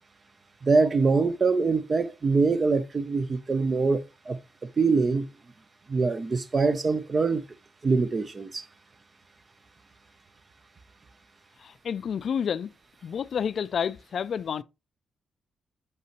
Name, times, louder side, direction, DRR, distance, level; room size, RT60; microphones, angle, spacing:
voice 1, 0.6-4.4 4.8-5.3 5.9-7.4 7.8-8.6, right 4 dB, 40° right, 0.7 m, -24 dB
voice 2, 11.6-12.7 13.0-14.6, left 7 dB, 65° left, 0.4 m, -29 dB
6.1 x 5.5 x 3.0 m
cardioid pair, 70°, 0 cm